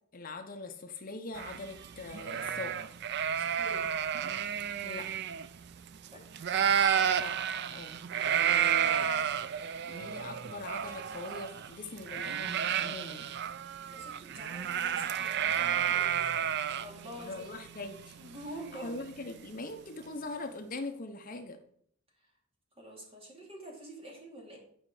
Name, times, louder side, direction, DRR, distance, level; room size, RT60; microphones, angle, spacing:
voice 1, 0.1-2.8 4.8-5.2 7.1-7.4 7.7-7.9 9.8-13.3 17.2-18.2 18.7-21.6, left 2 dB, 45° left, 6 dB, 0.8 m, -42 dB
sound 1, 1.3-6.1 6.3-19.3, right 8 dB, 55° right, 0.4 m, -31 dB
voice 2, 3.3-3.9 6.1-6.2 8.4-9.3 13.9-16.3 16.8-17.4 18.2-19.0 22.8-24.6, equal, 30° right, -1 dB, 2.5 m, -46 dB
9.9 x 5.3 x 4.9 m, 0.64 s
head